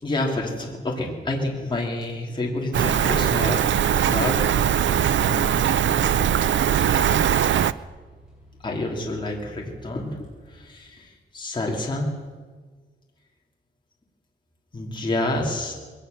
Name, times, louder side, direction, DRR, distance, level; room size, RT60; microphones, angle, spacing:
voice 1, 0.0-4.7 5.1-6.1 6.8-6.9 8.6-10.2 10.5-12.1 14.7-15.7, left 2 dB, 25° left, -1 dB, 3.0 m, -29 dB
sound 1, 2.0-2.2 3.1-11.1, equal, 5° right, 7.0 m, -48 dB
Rain, 2.7-7.7, right 9 dB, 75° right, 0.5 m, -21 dB
21.0 x 18.0 x 6.8 m, 1.5 s
wide cardioid pair, 155°, 19 cm